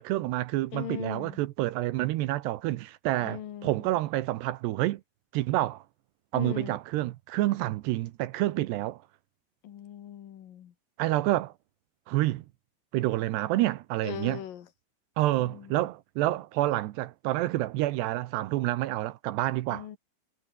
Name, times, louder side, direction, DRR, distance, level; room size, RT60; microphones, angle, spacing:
voice 1, 0.0-5.0 5.3-5.8 6.3-9.0 11.0-11.5 12.1-12.4 12.9-14.4 15.2-20.0, right 16 dB, 80° right, 2.4 m, -28 dB
voice 2, 0.7-1.4 3.2-3.8 6.3-6.8 9.6-10.7 14.0-14.7 15.4-15.8 19.7-20.0, left 10 dB, 60° left, 2.6 m, -39 dB
omnidirectional pair, 6.0 m